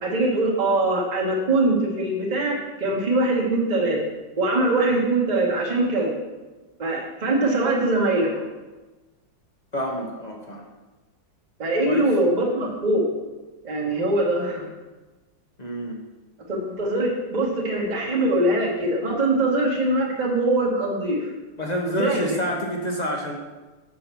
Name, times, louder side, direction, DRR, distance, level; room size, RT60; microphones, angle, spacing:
voice 1, 0.0-4.0 4.4-6.1 6.8-8.4 11.6-13.1 13.6-14.7 16.5-21.3 21.9-22.4, right 2 dB, 25° right, -3 dB, 1.3 m, -22 dB
voice 2, 9.7-10.6 11.8-12.1 15.6-16.0 21.6-23.4, equal, 35° left, 0 dB, 0.7 m, -28 dB
5.8 x 5.5 x 6.8 m, 1.2 s
omnidirectional pair, 2.1 m